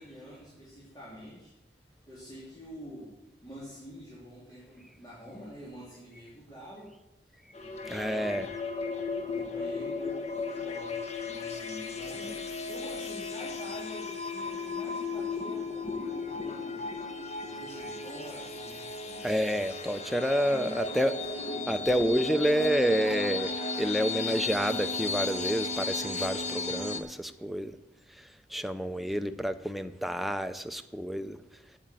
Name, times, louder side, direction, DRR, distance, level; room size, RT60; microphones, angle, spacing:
voice 1, 0.0-1.5 1.8-3.2 3.4-6.9 7.6-8.6 9.2-17.0 17.5-19.4 20.4-21.5 29.0-29.4, equal, 25° left, -7 dB, 3.2 m, -47 dB
sound 1, 7.5-27.0, left 3 dB, 40° left, 1.3 m, -35 dB
voice 2, 7.9-8.5 19.2-21.1 21.7-23.5 23.8-27.7 28.5-31.4, equal, ahead, 8 dB, 0.6 m, -29 dB
8.9 x 8.6 x 8.2 m, 0.95 s
head